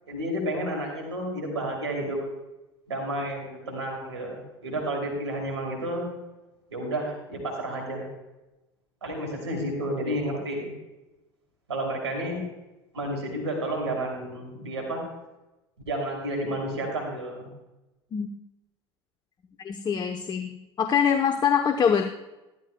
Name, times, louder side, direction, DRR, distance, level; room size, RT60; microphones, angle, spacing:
voice 1, 0.1-2.2 2.9-6.1 6.7-8.1 9.0-10.7 11.7-12.4 12.9-15.0 15.9-17.5, right 1 dB, 90° right, 0 dB, 2.8 m, -31 dB
voice 2, 19.6-22.1, left 7 dB, 30° left, 7 dB, 0.8 m, -24 dB
14.0 x 13.0 x 2.2 m, 1.0 s
hypercardioid pair, 75°, 14 cm